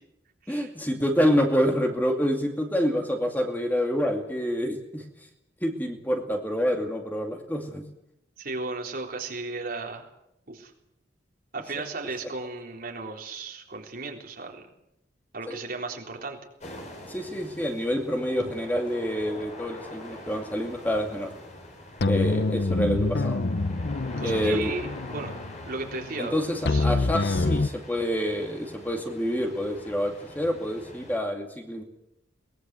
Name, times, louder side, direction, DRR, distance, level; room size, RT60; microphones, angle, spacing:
voice 1, 0.5-5.0 5.6-7.9 15.5-15.6 17.1-21.3 22.0-23.4 24.2-24.7 26.2-31.8, equal, 10° left, 3 dB, 2.3 m, -27 dB
voice 2, 8.4-10.1 10.5-10.7 11.5-14.7 15.3-16.4 24.2-25.3 25.6-26.4 26.7-26.8, right 3 dB, 50° right, 1 dB, 3.9 m, -35 dB
sound 1, 16.6-31.2, left 1 dB, 40° left, 4.7 m, -44 dB
sound 2, 22.0-27.7, left 2 dB, 60° left, 0.7 m, -26 dB
22.5 x 19.5 x 7.7 m, 0.84 s
head